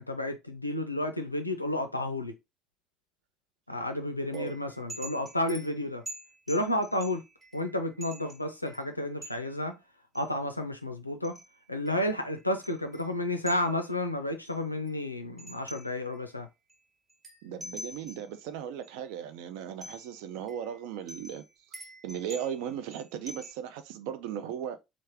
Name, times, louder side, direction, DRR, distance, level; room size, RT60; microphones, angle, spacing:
voice 1, 0.0-2.3 3.7-6.0 6.5-7.2 7.5-9.8 10.1-11.4 11.7-16.5, left 1 dB, 90° left, 0.4 m, -31 dB
sound 1, 4.3-9.6 10.1-10.3 11.2-13.9 14.4-16.3 16.7-16.8 17.1-18.4 18.8-18.9 19.8-20.2 20.5-23.5, right 1 dB, 25° right, 1.1 m, -47 dB
voice 2, 17.4-21.4 22.0-24.8, right 9 dB, 60° right, 0.4 m, -37 dB
3.1 x 2.4 x 3.3 m
figure-of-eight pair, 55°, 0 cm